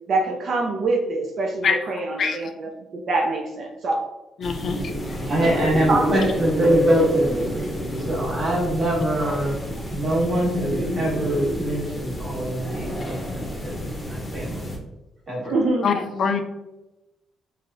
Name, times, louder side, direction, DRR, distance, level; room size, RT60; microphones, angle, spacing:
voice 1, 0.1-4.1 5.4-5.6 5.9-6.1 9.2-9.3 15.5-15.9, right 2 dB, 60° right, 1 dB, 0.4 m, -25 dB
voice 2, 4.4-4.8 15.8-16.4, left 6 dB, 60° left, 6 dB, 0.3 m, -23 dB
sound 1, 4.4-14.8, equal, 15° left, 0.7 m, -29 dB
voice 3, 5.1-7.6 8.0-9.6 9.9-14.7 15.3-15.6, right 1 dB, 35° right, -4 dB, 1.3 m, -24 dB
3.2 x 2.3 x 2.6 m, 1.0 s
cardioid pair, 90°, 0 cm